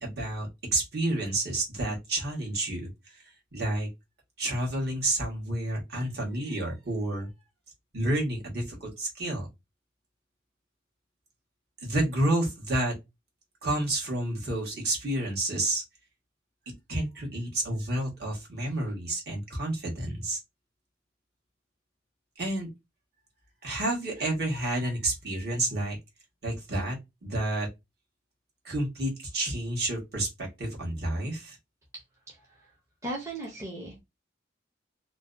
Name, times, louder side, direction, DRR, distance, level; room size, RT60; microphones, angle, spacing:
voice 1, 0.0-3.2 3.5-3.9 4.4-7.3 7.9-9.5 11.8-12.9 13.6-15.8 16.9-20.4 22.4-22.7 23.6-26.0 26.4-27.7 28.6-31.6, right 1 dB, 55° right, 1.1 m, -30 dB
voice 2, 32.3-32.7 33.0-34.0, right 2 dB, 15° right, 0.5 m, -37 dB
2.5 x 2.1 x 2.4 m
head